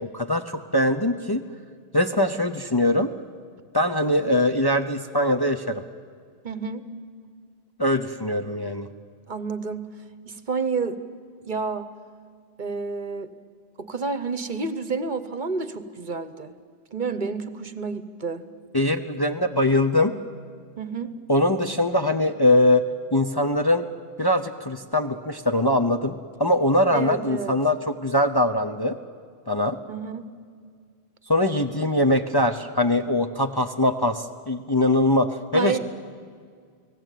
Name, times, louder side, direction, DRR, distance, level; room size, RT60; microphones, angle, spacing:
voice 1, 0.0-1.4 1.9-3.1 3.7-5.8 7.8-8.9 18.7-20.1 21.3-22.8 23.1-23.9 24.2-29.0 29.5-29.8 31.3-35.8, left 1 dB, 25° left, 5 dB, 0.7 m, -22 dB
voice 2, 6.4-6.8 9.3-9.9 10.2-11.0 11.4-11.9 12.6-13.3 13.8-16.5 16.9-18.4 20.8-21.1 26.9-27.5 29.9-30.2 35.5-35.8, right 4 dB, 50° right, 12 dB, 1.1 m, -29 dB
30.0 x 18.5 x 9.2 m, 2.1 s
omnidirectional pair, 1.1 m